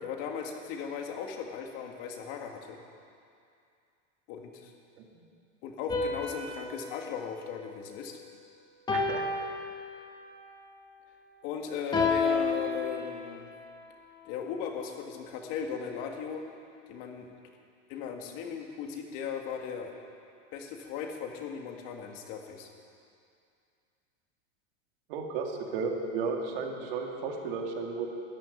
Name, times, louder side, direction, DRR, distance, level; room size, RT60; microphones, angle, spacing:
voice 1, 0.0-2.8 4.3-4.7 5.6-8.2 11.4-13.5 14.2-16.4 16.9-17.3 17.9-19.9 20.5-22.7, left 7 dB, 40° left, 3 dB, 1.9 m, -37 dB
sound 1, 5.9-8.3 8.9-10.4 11.9-13.6, left 4 dB, 10° left, 1.1 m, -32 dB
voice 2, 8.9-9.2 25.1-28.1, right 4 dB, 50° right, 1 dB, 2.3 m, -33 dB
13.5 x 11.0 x 9.8 m, 2.4 s
supercardioid pair, 170°, 38 cm